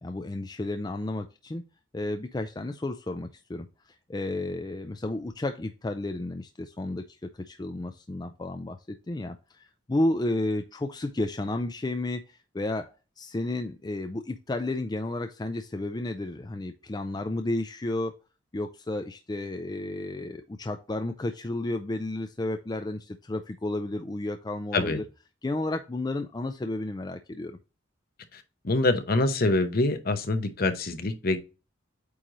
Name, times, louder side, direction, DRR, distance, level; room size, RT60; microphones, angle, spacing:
voice 1, 0.0-1.6 1.9-3.7 4.1-7.0 7.5-18.1 18.5-25.0 25.4-27.6, left 2 dB, 20° left, 0.4 m, -32 dB
voice 2, 28.3-31.4, left 2 dB, 50° left, 0.9 m, -25 dB
8.4 x 3.1 x 3.8 m
head